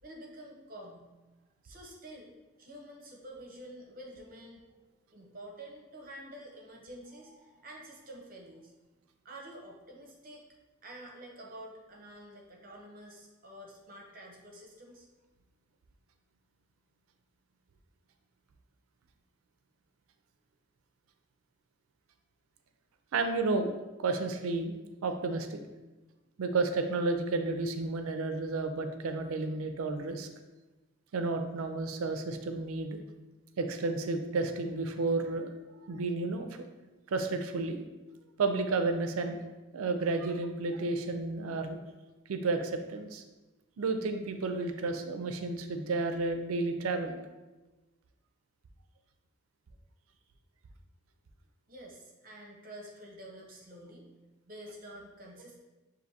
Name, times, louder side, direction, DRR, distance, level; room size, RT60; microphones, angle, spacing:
voice 1, 0.0-1.1 1.6-2.3 2.6-4.7 4.9-8.7 9.2-10.4 10.8-15.1 51.7-54.1 54.5-55.6, right 1 dB, 40° right, -1 dB, 0.7 m, -48 dB
voice 2, 23.1-23.7 24.0-24.8 25.0-25.6 26.4-30.3 31.1-33.0 33.6-35.5 35.8-36.7 37.1-37.8 38.4-39.4 39.7-41.8 42.3-43.2 43.8-47.2, right 3 dB, 85° right, 6 dB, 0.4 m, -31 dB
6.2 x 2.6 x 2.7 m, 1.1 s
head